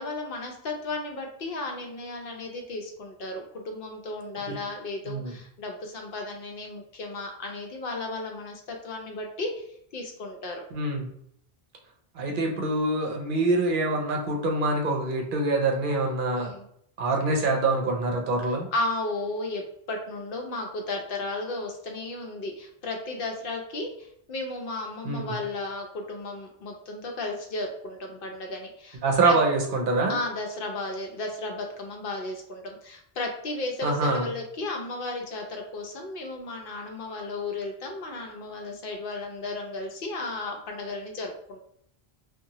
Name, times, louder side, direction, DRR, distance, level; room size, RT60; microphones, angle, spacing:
voice 1, 0.0-9.7 9.9-10.6 16.4-16.7 18.7-29.4 30.1-41.6, left 2 dB, 65° left, 2 dB, 0.7 m, -34 dB
voice 2, 10.7-11.1 12.2-16.5 17.0-18.7 25.0-25.2 29.0-30.2 33.8-34.3, right 2 dB, 65° right, 1 dB, 0.7 m, -25 dB
2.8 x 2.2 x 2.7 m, 0.69 s
omnidirectional pair, 1.0 m